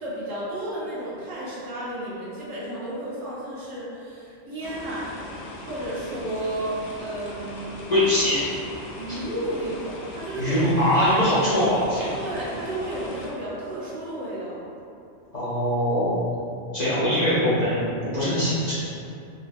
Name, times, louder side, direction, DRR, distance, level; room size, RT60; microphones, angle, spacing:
voice 1, 0.0-5.2 5.7-7.8 9.0-10.7 12.2-14.6, right 1 dB, 85° right, -8 dB, 1.3 m, -32 dB
sound 1, 4.6-13.3, left 1 dB, 90° left, 1.0 m, -39 dB
voice 2, 7.9-8.5 9.1-9.2 10.4-12.2 15.3-16.1 16.7-18.7, left 1 dB, 45° left, -11 dB, 0.6 m, -22 dB
3.7 x 2.4 x 2.5 m, 2.5 s
omnidirectional pair, 1.3 m